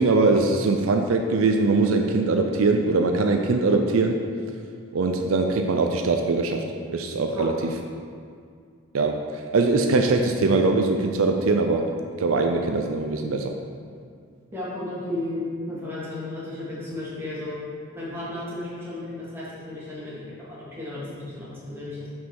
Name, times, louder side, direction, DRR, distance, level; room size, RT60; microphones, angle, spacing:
voice 1, 0.0-4.3 4.9-7.5 8.9-11.9 12.2-13.5, right 3 dB, 70° right, 4 dB, 0.5 m, -22 dB
voice 2, 7.3-7.7 14.5-17.6 17.9-22.1, left 1 dB, 10° right, -8 dB, 1.8 m, -34 dB
6.2 x 5.5 x 4.7 m, 2.2 s
head